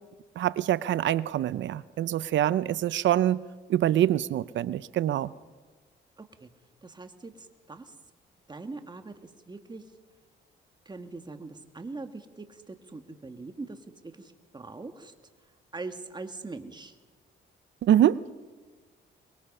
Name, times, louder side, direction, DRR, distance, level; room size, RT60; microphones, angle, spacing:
voice 1, 0.4-3.4 3.7-5.3 17.8-18.3, right 12 dB, 70° right, 17 dB, 0.6 m, -25 dB
voice 2, 6.2-6.5 6.8-7.9 8.5-9.8 10.9-13.8 14.1-15.1 15.7-17.0, right 3 dB, 20° right, 7 dB, 2.0 m, -42 dB
23.5 x 22.0 x 5.5 m, 1.4 s
cardioid pair, 90°, 20 cm